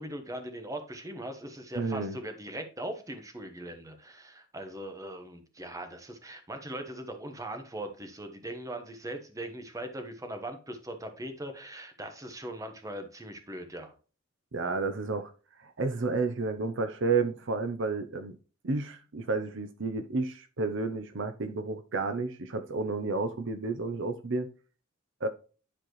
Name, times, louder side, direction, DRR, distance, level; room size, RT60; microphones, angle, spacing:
voice 1, 0.0-13.9, right 1 dB, 15° right, 1.1 m, -40 dB
voice 2, 1.8-2.2 14.5-15.3 15.6-18.4 18.6-24.5 25.2-25.3, right 3 dB, 60° right, 0.7 m, -31 dB
10.0 x 4.4 x 3.2 m
head